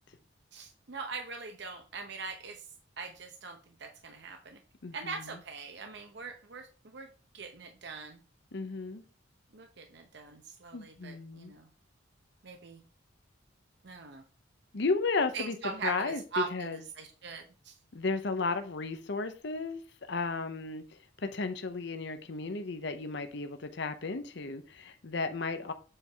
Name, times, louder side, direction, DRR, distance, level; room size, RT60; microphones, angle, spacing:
voice 1, 0.5-2.7 3.0-4.6 4.9-7.1 7.3-8.2 9.5-11.7 12.4-12.8 13.8-14.2 15.3-17.7, right 4 dB, 60° right, 0.8 m, -41 dB
voice 2, 4.8-5.4 8.5-9.0 10.7-11.5 14.7-15.6 15.8-16.8 17.9-19.8 20.1-25.7, left 3 dB, 60° left, 0.7 m, -34 dB
7.7 x 4.6 x 3.4 m
head